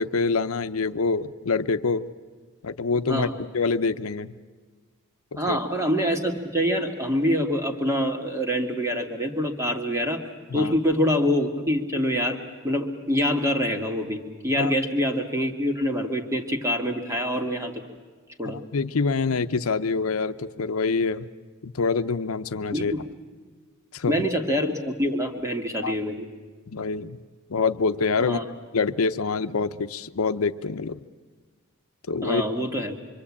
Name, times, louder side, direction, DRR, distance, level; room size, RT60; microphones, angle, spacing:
voice 1, 0.0-2.1 2.6-3.3 3.5-4.3 5.3-5.6 10.5-10.7 14.6-14.7 18.4-21.3 21.6-22.9 23.9-24.3 25.8-26.0 26.7-27.2 27.5-28.4 28.7-31.0 32.1-32.4, left 4 dB, 85° left, 11 dB, 0.7 m, -26 dB
voice 2, 5.4-10.3 10.5-12.4 12.6-17.8 18.4-18.6 22.7-23.0 24.1-26.3 28.2-28.4 32.2-33.0, equal, 15° right, 3 dB, 2.1 m, -25 dB
25.0 x 24.5 x 8.6 m, 1.4 s
head